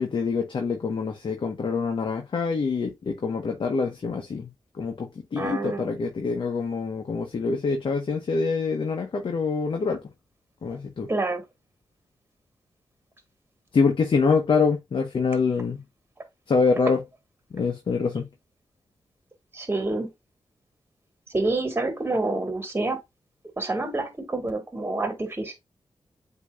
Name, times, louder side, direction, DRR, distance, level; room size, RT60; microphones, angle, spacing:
voice 1, 0.0-4.5 4.8-10.0 10.6-11.1 13.7-15.8 16.5-17.0 17.5-18.3, left 4 dB, 60° left, 0.9 m, -25 dB
voice 2, 5.3-5.9 11.1-11.4 19.5-20.1 21.3-23.0 23.6-25.6, right 2 dB, 20° right, 1.5 m, -27 dB
8.1 x 2.8 x 2.3 m
cardioid pair, 80°, 10 cm